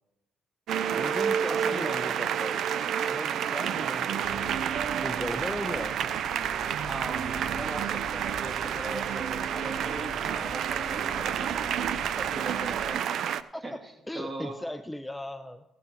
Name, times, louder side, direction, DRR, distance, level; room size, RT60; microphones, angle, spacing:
sound 1, 0.7-13.4, right 9 dB, 75° right, 0.4 m, -29 dB
voice 1, 1.0-4.6 5.0-5.9 13.5-13.8 14.1-15.6, left 1 dB, 10° left, 7 dB, 0.4 m, -37 dB
voice 2, 1.5-2.2 6.8-13.0 13.6-13.7 14.1-14.6, right 2 dB, 30° right, 1 dB, 2.1 m, -39 dB
sound 2, 4.2-13.0, left 5 dB, 60° left, 0.7 m, -46 dB
15.5 x 11.5 x 2.9 m, 0.94 s
cardioid pair, 90°, 0 cm